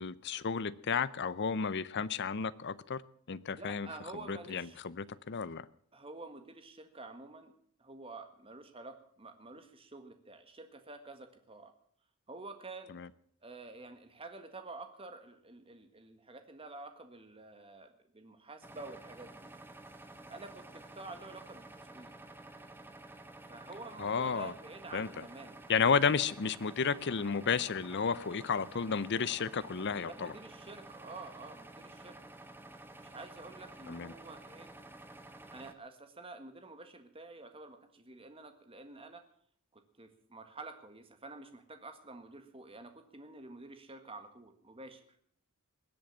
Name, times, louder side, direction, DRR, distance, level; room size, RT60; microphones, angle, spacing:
voice 1, 0.0-3.0 3.3-3.9 4.3-5.6 12.9-13.1 24.0-24.5 24.9-25.2 25.7-30.3 33.9-34.1, left 6 dB, 50° left, 17 dB, 0.6 m, -32 dB
voice 2, 3.6-4.8 5.9-7.5 7.8-11.7 12.3-12.9 13.4-19.5 20.3-21.6 21.9-22.1 23.5-25.7 30.1-32.2 33.0-34.8 35.5-39.2 39.7-45.0, right 3 dB, 25° right, 7 dB, 1.7 m, -49 dB
sound 1, 18.6-35.7, right 2 dB, 10° right, 1.0 m, -51 dB
21.0 x 7.9 x 7.3 m, 0.63 s
head